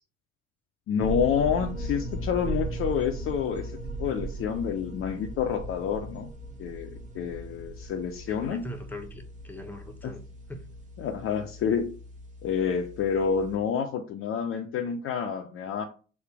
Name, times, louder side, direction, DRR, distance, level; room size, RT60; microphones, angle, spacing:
voice 1, 0.9-3.7 4.0-6.3 6.6-8.7 10.0-10.1 11.0-11.9 12.4-15.8, left 7 dB, 35° left, 0.6 m, -28 dB
sound 1, 1.0-13.6, right 2 dB, 20° right, 1.1 m, -38 dB
voice 2, 8.3-10.2 10.5-10.6, left 1 dB, 5° left, 0.9 m, -41 dB
4.1 x 2.6 x 4.7 m
figure-of-eight pair, 60°, 35 cm